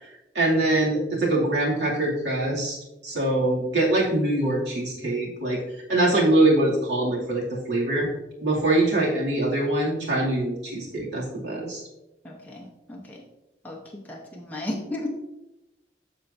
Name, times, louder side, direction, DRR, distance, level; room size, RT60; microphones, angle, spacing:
voice 1, 0.3-2.8 3.0-5.6 5.9-8.1 8.4-11.8, right 2 dB, 75° right, -4 dB, 2.5 m, -23 dB
voice 2, 12.2-13.2 13.6-15.1, left 1 dB, 10° left, -2 dB, 0.8 m, -35 dB
13.0 x 4.4 x 2.6 m, 0.98 s
head